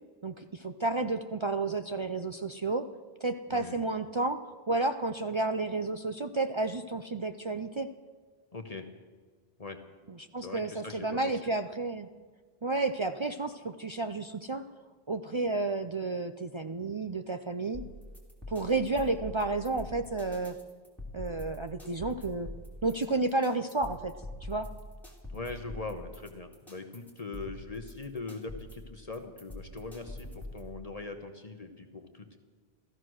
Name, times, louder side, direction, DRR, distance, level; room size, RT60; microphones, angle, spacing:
voice 1, 0.2-2.9 3.2-7.9 10.3-12.1 12.6-14.7 15.1-17.8 18.5-20.6 21.1-22.5 22.8-24.2 24.5-24.7, right 3 dB, 40° right, 8 dB, 0.4 m, -31 dB
voice 2, 3.5-3.8 8.5-8.9 9.6-9.8 10.4-11.5 25.3-32.4, left 3 dB, 35° left, 5 dB, 1.1 m, -41 dB
sound 1, 17.7-30.7, left 1 dB, ahead, 2.7 m, -44 dB
15.0 x 14.5 x 6.3 m, 1.5 s
omnidirectional pair, 1.1 m